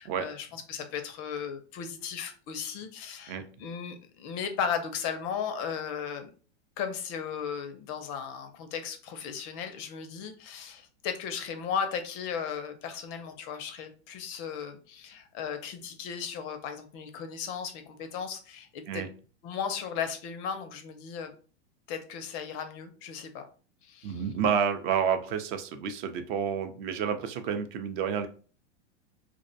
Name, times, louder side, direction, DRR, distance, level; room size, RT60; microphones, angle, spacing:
voice 1, 0.0-6.3 6.8-19.0 19.4-21.3 21.9-23.5 23.8-24.2, left 7 dB, 35° left, 7 dB, 0.4 m, -36 dB
voice 2, 24.0-28.3, right 7 dB, 45° right, 8 dB, 0.5 m, -29 dB
2.5 x 2.1 x 2.6 m, 0.39 s
hypercardioid pair, 120°, 35 cm